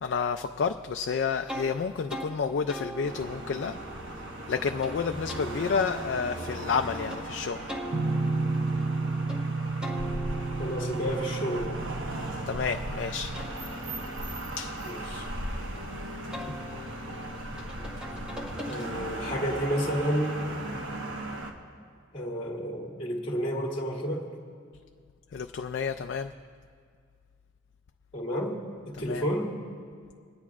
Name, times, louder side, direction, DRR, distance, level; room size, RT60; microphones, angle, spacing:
voice 1, 0.0-3.8 4.5-7.7 12.5-13.3 14.6-14.8 25.3-26.3 29.1-29.2, left 5 dB, 55° left, 6 dB, 0.3 m, -30 dB
sound 1, 1.5-1.7 2.1-2.3 2.7-4.9 5.3-7.2 7.7-9.4 9.8-12.7 13.1-15.8 16.3-19.3, right 1 dB, 5° right, 1.2 m, -42 dB
sound 2, 3.0-21.5, right 1 dB, 70° right, 1.2 m, -37 dB
sound 3, 7.9-13.5, right 3 dB, 55° right, 0.6 m, -32 dB
voice 2, 10.6-11.9 14.8-15.3 18.7-20.4 22.1-24.3 28.1-29.6, equal, 25° left, -2 dB, 1.4 m, -31 dB
27.0 x 10.5 x 2.4 m, 2.2 s
head